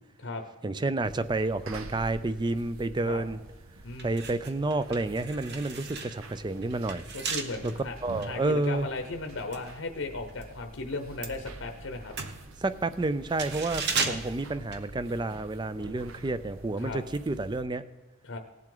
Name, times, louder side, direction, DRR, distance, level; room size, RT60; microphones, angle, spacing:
voice 1, 0.6-3.4 4.0-7.1 7.6-7.7 8.0-8.9 12.6-17.8, right 2 dB, 20° right, 14 dB, 0.4 m, -30 dB
sound 1, 1.0-17.6, right 2 dB, 85° right, 0.9 m, -47 dB
voice 2, 3.8-4.2 7.1-12.1 14.0-14.2 16.8-17.0 18.2-18.4, left 3 dB, 65° left, 5 dB, 0.8 m, -36 dB
sound 2, 3.9-10.5 10.8-15.5 15.7-15.9, right 5 dB, 55° right, 1.1 m, -37 dB
18.5 x 7.5 x 3.9 m, 1.2 s
head